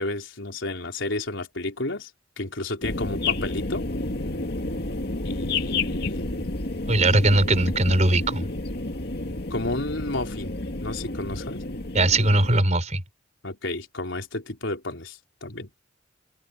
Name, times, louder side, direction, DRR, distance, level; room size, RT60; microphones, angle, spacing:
voice 1, 0.0-2.1 2.4-3.9 5.2-6.2 9.5-11.7 13.4-15.7, left 2 dB, 80° left, 4.0 m, -32 dB
sound 1, 2.8-12.6, left 2 dB, 55° left, 2.0 m, -30 dB
voice 2, 6.9-8.4 11.9-13.0, right 2 dB, 40° right, 4.4 m, -20 dB
open air
head